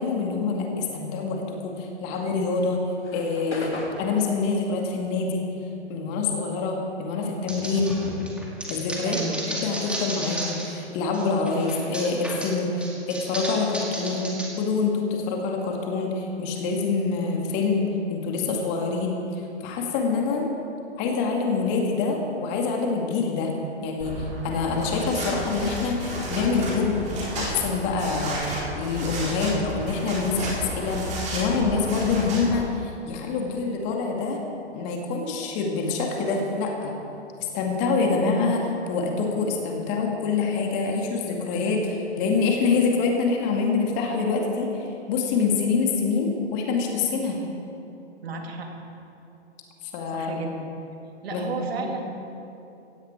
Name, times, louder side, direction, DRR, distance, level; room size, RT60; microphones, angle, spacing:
voice 1, 0.0-2.8 3.1-5.4 5.9-8.0 8.7-9.2 9.6-12.7 13.1-14.2 14.6-17.8 18.1-19.1 19.6-20.5 21.0-23.5 23.8-27.0 27.3-31.0 31.3-34.4 34.7-36.9 37.5-47.4 49.8-50.4 51.3-51.4 51.8-51.9, left 4 dB, 30° left, 1 dB, 2.3 m, -26 dB
sound 1, 2.1-6.8 7.1-9.1, left 1 dB, 75° left, 3.2 m, -39 dB
sound 2, 7.5-10.8 11.1-14.5, right 1 dB, 5° right, 2.1 m, -34 dB
voice 2, 9.0-9.4 48.2-48.7 50.1-50.7 51.2-52.0, right 4 dB, 60° right, 2 dB, 2.8 m, -32 dB
sound 3, 24.0-32.6, equal, 20° right, 4.4 m, -32 dB
17.0 x 16.0 x 4.6 m, 2.8 s
figure-of-eight pair, 120°, 34 cm